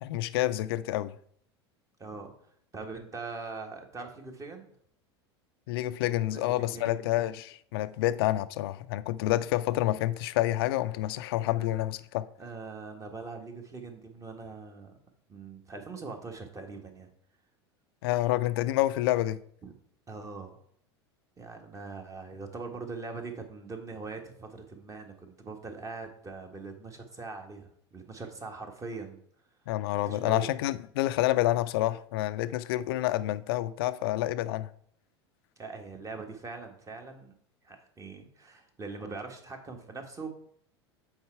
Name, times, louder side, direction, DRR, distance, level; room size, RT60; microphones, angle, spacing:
voice 1, 0.0-1.2 5.7-12.3 18.0-19.4 29.7-34.7, left 15 dB, 60° left, 0.5 m, -28 dB
voice 2, 2.0-2.3 2.7-4.7 6.2-7.1 12.4-14.9 15.3-17.1 19.6-19.7 20.1-20.6 21.4-29.2 30.1-30.5 35.6-37.3 37.6-40.3, right 4 dB, 20° right, 1.5 m, -42 dB
8.1 x 4.4 x 4.6 m
figure-of-eight pair, 80°, 14 cm